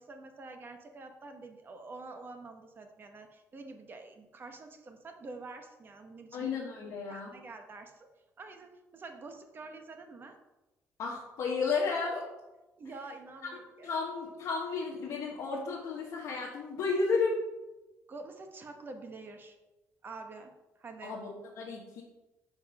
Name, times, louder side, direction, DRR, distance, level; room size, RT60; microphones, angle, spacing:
voice 1, 0.0-6.5 7.1-8.1 8.4-10.4 12.8-13.9 18.1-19.6 20.0-21.2, right 3 dB, 35° right, 5 dB, 1.0 m, -47 dB
voice 2, 6.3-7.3 11.0-12.3 13.4-13.5 13.8-17.4 21.0-22.0, left 4 dB, 65° left, -5 dB, 1.3 m, -33 dB
5.3 x 5.2 x 5.1 m, 1.1 s
cardioid pair, 110°, 6 cm